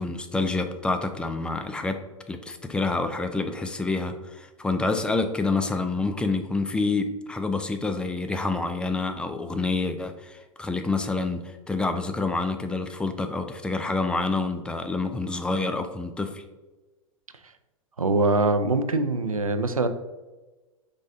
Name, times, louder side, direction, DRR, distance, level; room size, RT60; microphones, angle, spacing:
voice 1, 0.0-2.0 2.3-16.4, left 3 dB, 5° left, 7 dB, 0.3 m, -27 dB
voice 2, 18.0-19.9, right 3 dB, 90° right, 9 dB, 0.4 m, -23 dB
5.3 x 3.8 x 2.6 m, 1.2 s
figure-of-eight pair, 95°, 17 cm